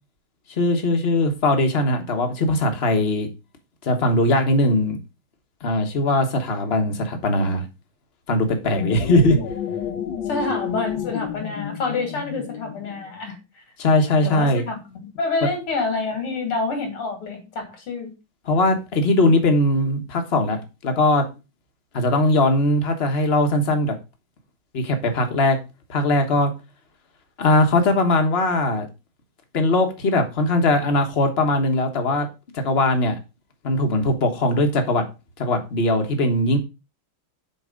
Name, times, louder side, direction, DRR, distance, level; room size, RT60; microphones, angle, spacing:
voice 1, 0.6-3.3 3.8-5.0 5.6-7.7 8.3-9.4 13.8-14.6 18.5-21.2 21.9-23.9 24.7-25.6 25.9-26.5 27.4-28.9 29.5-32.3 32.5-33.2 33.6-35.0 35.4-36.6, left 1 dB, 35° left, 1.3 m, -20 dB
sound 1, 8.6-13.2, left 8 dB, 65° left, 1.8 m, -31 dB
voice 2, 10.3-13.6 14.2-18.1, left 3 dB, 80° left, 3.2 m, -27 dB
7.0 x 4.6 x 5.2 m
omnidirectional pair, 2.4 m